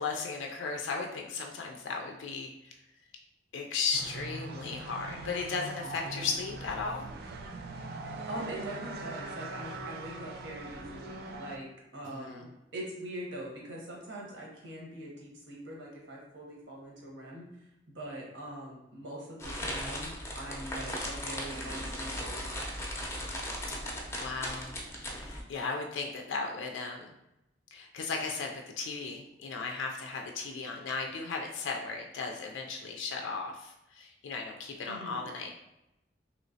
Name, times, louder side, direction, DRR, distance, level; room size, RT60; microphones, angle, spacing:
voice 1, 0.0-2.8 3.5-7.1 12.1-12.5 24.1-24.7 25.0-27.1 27.7-35.5, left 4 dB, 85° left, 2 dB, 0.4 m, -36 dB
sound 1, 3.9-11.6, right 2 dB, 55° right, 0.3 m, -42 dB
voice 2, 8.3-11.7 11.9-12.5 12.7-17.5 17.9-22.5 34.9-35.3, right 1 dB, 75° right, -3 dB, 1.0 m, -42 dB
sound 2, 19.4-25.4, equal, 15° left, 0.5 m, -37 dB
3.0 x 3.0 x 2.6 m, 0.89 s
head